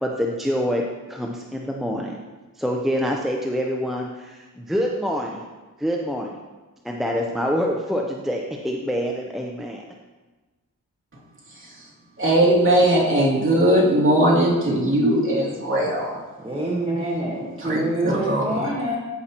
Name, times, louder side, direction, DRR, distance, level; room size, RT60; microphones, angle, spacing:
voice 1, 0.0-2.2 2.6-5.5 5.8-6.3 6.8-9.8, equal, ahead, 0 dB, 0.7 m, -26 dB
voice 2, 12.2-16.1 17.6-17.8 18.3-18.4, right 1 dB, 40° right, -6 dB, 2.8 m, -19 dB
voice 3, 16.4-18.9, right 1 dB, 15° right, -4 dB, 1.4 m, -26 dB
13.0 x 5.8 x 3.0 m, 1.2 s
cardioid pair, 60°, 33 cm